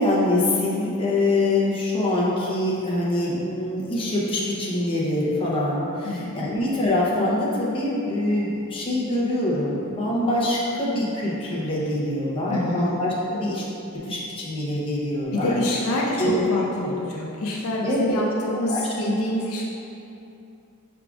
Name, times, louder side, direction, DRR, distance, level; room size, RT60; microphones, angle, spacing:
voice 1, 0.0-13.7 14.1-15.6 16.2-16.4 17.8-18.2 18.6-19.1, left 1 dB, 25° left, -6 dB, 0.7 m, -24 dB
voice 2, 6.0-6.5 12.5-12.9 15.3-19.6, left 1 dB, 65° left, -2 dB, 0.4 m, -26 dB
4.8 x 3.6 x 2.4 m, 2.8 s
head